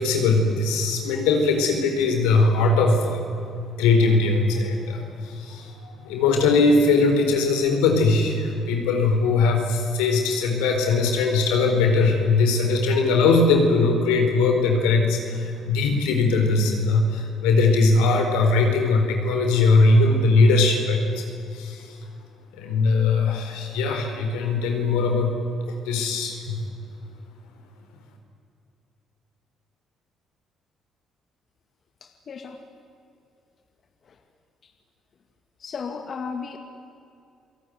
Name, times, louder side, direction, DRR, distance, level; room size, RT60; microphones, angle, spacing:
voice 1, 0.0-3.4 3.8-21.3 21.5-22.0 22.5-25.4 25.8-26.6, left 3 dB, 90° left, 3 dB, 4.4 m, -20 dB
voice 2, 32.0-32.6 34.0-34.2 34.6-34.7 35.6-36.6, left 5 dB, 50° left, 5 dB, 2.3 m, -35 dB
28.5 x 18.5 x 9.6 m, 2.6 s
supercardioid pair, 70°, 0 cm